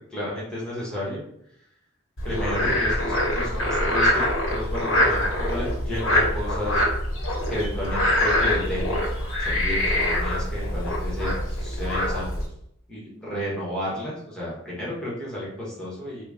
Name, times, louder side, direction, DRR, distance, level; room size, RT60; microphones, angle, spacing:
voice 1, 0.1-1.2 2.2-4.2 4.5-6.8 7.5-8.9 9.4-12.3 12.9-16.2, left 1 dB, 5° left, -7 dB, 1.1 m, -32 dB
Frog, 2.2-12.5, left 1 dB, 80° left, 1.1 m, -24 dB
3.9 x 2.2 x 3.5 m, 0.72 s
head